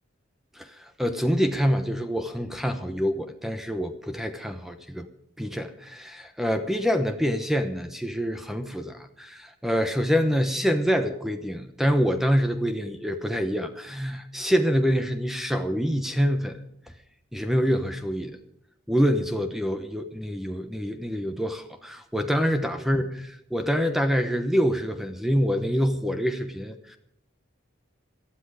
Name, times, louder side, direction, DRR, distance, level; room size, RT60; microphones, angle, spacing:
voice 1, 0.6-5.1 5.4-16.6 17.3-18.4 18.9-27.0, equal, ahead, 7 dB, 1.0 m, -26 dB
18.5 x 13.0 x 4.9 m, 0.75 s
head